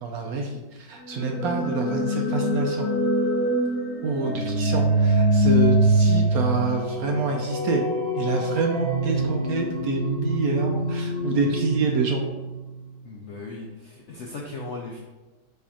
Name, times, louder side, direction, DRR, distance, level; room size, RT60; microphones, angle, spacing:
voice 1, 0.0-2.9 4.0-7.8 8.1-12.2, right 3 dB, 70° right, 2 dB, 0.9 m, -27 dB
sound 1, 1.0-12.9, right 1 dB, 55° left, 1.4 m, -24 dB
voice 2, 13.0-15.0, left 3 dB, 70° left, -1 dB, 0.6 m, -37 dB
4.3 x 3.4 x 3.6 m, 1.2 s
omnidirectional pair, 1.9 m